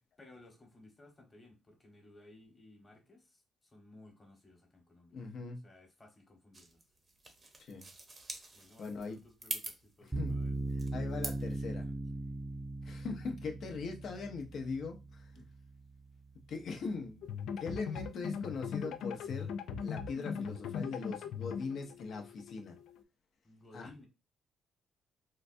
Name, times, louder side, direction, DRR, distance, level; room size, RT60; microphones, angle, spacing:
voice 1, 0.2-5.2 5.6-6.8 8.5-10.5 15.3-15.5 23.4-24.1, left 2 dB, 25° left, 1.2 m, -58 dB
voice 2, 5.1-5.6 7.6-7.9 8.8-9.2 10.1-11.9 12.8-15.3 16.5-17.3 17.6-19.5 19.8-22.8 23.7-23.9, left 4 dB, 65° left, 0.8 m, -41 dB
sound 1, 6.5-11.6, right 2 dB, 35° right, 0.8 m, -45 dB
sound 2, 10.1-17.2, right 2 dB, 10° right, 0.4 m, -39 dB
sound 3, 17.2-23.0, left 6 dB, 80° left, 0.3 m, -40 dB
3.8 x 2.2 x 2.6 m
cardioid pair, 90°, 0 cm